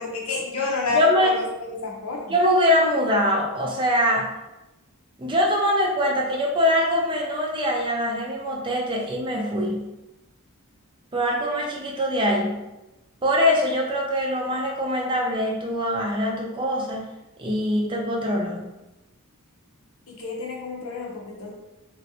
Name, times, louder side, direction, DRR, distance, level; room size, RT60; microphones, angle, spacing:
voice 1, 0.0-2.4 20.1-21.5, left 3 dB, 70° left, -1 dB, 0.7 m, -29 dB
voice 2, 0.9-1.3 2.3-4.3 5.2-9.9 11.1-12.6 13.2-17.0 17.4-18.7, left 1 dB, 20° right, -1 dB, 0.4 m, -23 dB
3.2 x 2.5 x 2.7 m, 1.0 s
head